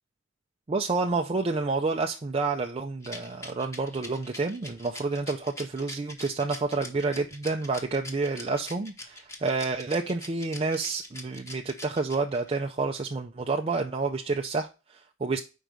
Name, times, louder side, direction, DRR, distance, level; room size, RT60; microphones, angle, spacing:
voice 1, 0.7-15.4, right 3 dB, 30° right, 0.4 m, -29 dB
Rattle, 3.0-12.6, left 1 dB, 15° left, 1.1 m, -42 dB
5.2 x 4.6 x 6.2 m
head